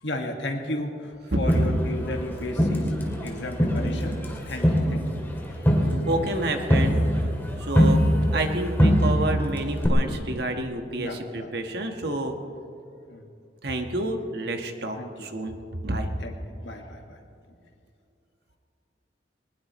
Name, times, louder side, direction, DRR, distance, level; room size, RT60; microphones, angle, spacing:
voice 1, 0.0-5.1 11.0-11.5 13.1-13.2 15.0-15.3 16.2-16.3 16.6-17.2, left 1 dB, 90° left, 3 dB, 1.8 m, -34 dB
voice 2, 1.3-1.6 5.8-7.3 7.6-8.0 8.3-12.3 13.6-16.1, right 1 dB, 65° right, 5 dB, 1.4 m, -29 dB
Crowd, 1.5-3.3 3.6-8.5 8.8-9.5 9.8-9.9, equal, 10° left, 2.2 m, -22 dB
20.5 x 20.0 x 3.1 m, 2.5 s
head